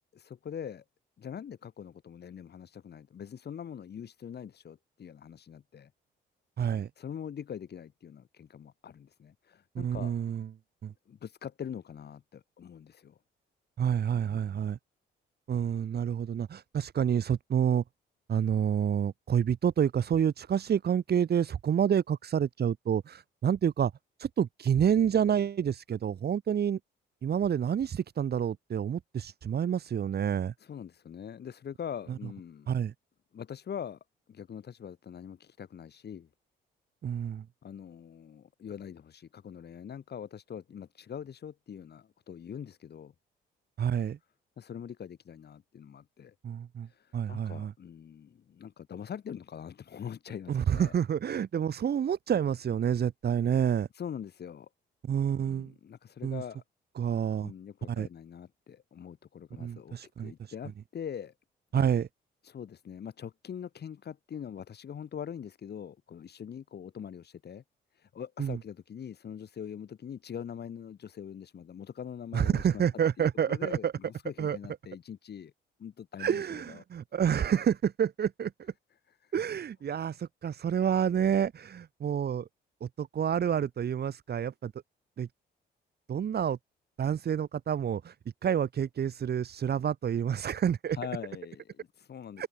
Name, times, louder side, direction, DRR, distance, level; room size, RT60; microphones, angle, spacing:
voice 1, 0.1-0.8 1.2-5.9 7.0-10.1 11.1-13.2 14.3-14.6 30.6-32.7 33.3-34.0 34.3-36.3 37.6-43.1 44.6-46.3 46.8-50.9 53.9-54.7 55.3-56.6 57.4-61.3 61.7-61.8 62.4-67.6 67.9-72.8 73.2-75.5 75.8-76.8 79.2-79.3 90.9-92.5, left 8 dB, 55° left, 7.7 m, -43 dB
voice 2, 6.6-6.9 9.7-10.5 10.8-10.9 13.8-14.8 15.5-17.8 18.3-23.9 24.2-26.8 27.2-30.5 32.7-32.9 37.0-37.4 43.8-44.2 46.4-46.9 47.1-47.7 50.5-53.9 55.0-55.7 56.2-56.4 57.0-57.5 57.9-58.1 59.6-60.5 61.7-62.1 68.4-68.6 72.3-73.9 74.4-74.6 76.2-78.7 79.3-82.5 82.8-84.7 85.2-85.3 86.1-86.6 87.0-88.1 88.4-91.0 92.4-92.5, right 8 dB, 55° right, 2.4 m, -28 dB
open air
cardioid pair, 90°, 20 cm